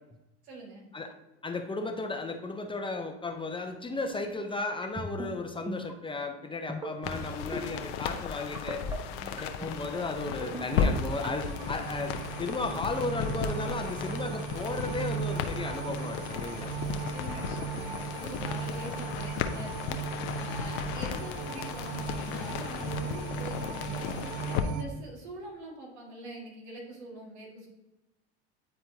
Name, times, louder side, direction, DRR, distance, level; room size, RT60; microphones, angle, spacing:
voice 1, 0.4-0.9 9.1-9.6 16.9-20.0 20.3-24.2 24.5-27.7, right 2 dB, 80° right, -2 dB, 2.0 m, -44 dB
voice 2, 1.4-8.8 9.2-12.1 12.4-16.7 18.0-18.3, left 3 dB, 15° left, 5 dB, 0.7 m, -35 dB
sound 1, 4.8-5.3 5.7-5.9 6.7-7.2 7.5-7.8 8.5-9.0 9.4-9.7 10.4-10.8 11.2-11.6, right 1 dB, 10° right, 0.9 m, -37 dB
sound 2, 7.0-24.6, left 7 dB, 65° left, 0.7 m, -35 dB
sound 3, 8.6-24.8, right 7 dB, 60° right, 0.6 m, -38 dB
9.6 x 4.4 x 2.8 m, 1.0 s
hypercardioid pair, 80°, 32 cm